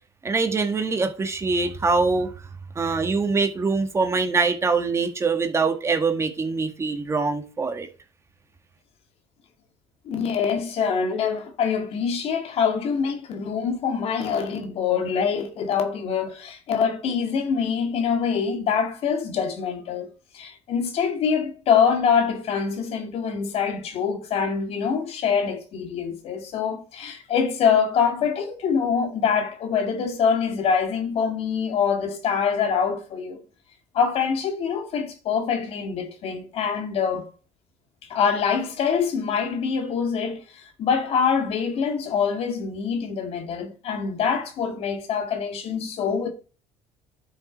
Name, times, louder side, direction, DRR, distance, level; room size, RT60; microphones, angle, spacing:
voice 1, 0.2-2.3 2.8-7.9, right 4 dB, 25° right, 1.8 m, -23 dB
voice 2, 10.1-33.4 33.9-37.3 38.1-46.3, left 6 dB, 60° left, 2.2 m, -25 dB
11.5 x 6.6 x 4.6 m
cardioid pair, 120°, 12 cm